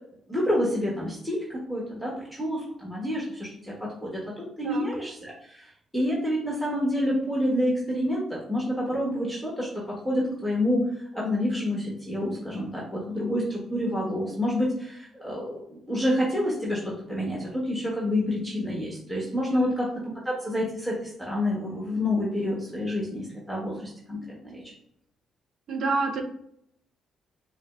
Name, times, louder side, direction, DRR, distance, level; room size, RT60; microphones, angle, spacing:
voice 1, 0.3-4.1 4.4-10.9 11.1-19.9 20.2-24.6, left 1 dB, ahead, -4 dB, 1.2 m, -28 dB
voice 2, 25.7-26.2, right 3 dB, 70° right, 3 dB, 0.7 m, -28 dB
6.1 x 2.0 x 2.4 m, 0.72 s
supercardioid pair, 55°, 0 cm